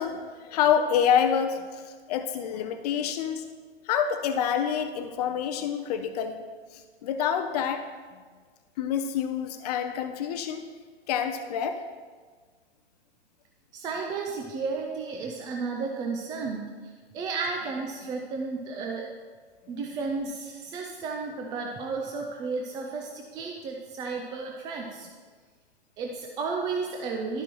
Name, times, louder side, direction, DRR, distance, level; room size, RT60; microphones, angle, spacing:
voice 1, 0.0-3.5 3.8-6.4 6.7-7.9 8.8-10.6 11.1-11.8, left 8 dB, 40° left, 8 dB, 0.6 m, -27 dB
voice 2, 13.7-19.1 19.7-25.1 26.0-27.4, right 4 dB, 15° right, 1 dB, 0.4 m, -33 dB
11.5 x 5.9 x 3.0 m, 1.5 s
hypercardioid pair, 125°, 31 cm